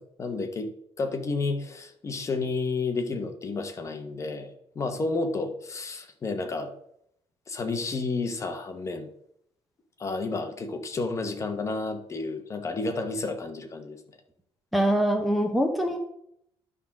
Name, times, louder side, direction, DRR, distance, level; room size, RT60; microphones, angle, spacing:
voice 1, 0.2-4.5 4.7-6.7 7.5-9.1 10.0-14.0, left 3 dB, 30° left, 6 dB, 1.1 m, -31 dB
voice 2, 14.7-16.0, equal, ahead, 3 dB, 0.8 m, -23 dB
11.0 x 3.7 x 5.9 m, 0.72 s
cardioid pair, 150°, 10 cm